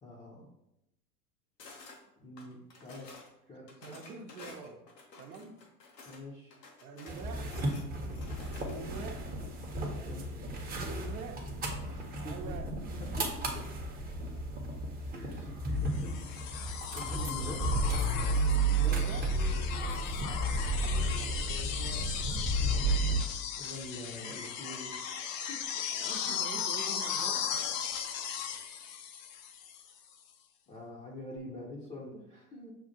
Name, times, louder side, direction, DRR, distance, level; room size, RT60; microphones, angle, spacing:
voice 1, 0.0-0.5 2.2-3.1 3.5-4.0 6.0-6.5 9.8-10.3 11.9-12.5 13.0-13.7 15.1-16.2 16.4-17.8 18.6-19.1 23.6-25.6 30.7-32.7, left 1 dB, 15° left, -5 dB, 0.6 m, -45 dB
sound 1, 1.6-2.0 2.4-3.3 3.7-6.2 6.5-9.0, left 3 dB, 85° left, 1.0 m, -52 dB
voice 2, 3.8-4.8 5.2-5.6 6.8-7.6 8.7-9.3 10.7-11.4 12.2-12.8 14.4-14.5 18.9-19.3 20.6-22.8 24.4-24.5 25.7-27.7 31.6-31.7, right 4 dB, 65° right, 5 dB, 0.8 m, -46 dB
sound 2, 7.1-23.2, right 2 dB, 20° right, 0.8 m, -33 dB
sound 3, 15.9-29.9 31.4-31.5, left 8 dB, 55° left, 0.6 m, -37 dB
6.5 x 2.4 x 2.7 m, 0.84 s
hypercardioid pair, 90°, 48 cm